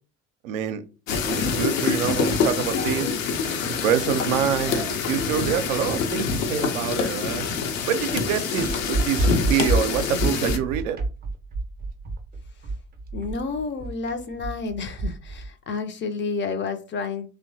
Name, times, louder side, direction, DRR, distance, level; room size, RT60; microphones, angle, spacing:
voice 1, 0.4-0.8 1.3-3.2 3.8-7.5 7.9-11.0, right 9 dB, 75° right, 0.5 m, -26 dB
sound 1, 1.1-10.6, left 5 dB, 70° left, 0.6 m, -26 dB
sound 2, 8.7-15.5, right 2 dB, 25° right, 0.5 m, -28 dB
voice 2, 13.1-17.3, left 4 dB, 30° left, 0.4 m, -30 dB
2.9 x 2.1 x 2.6 m
figure-of-eight pair, 60°, 41 cm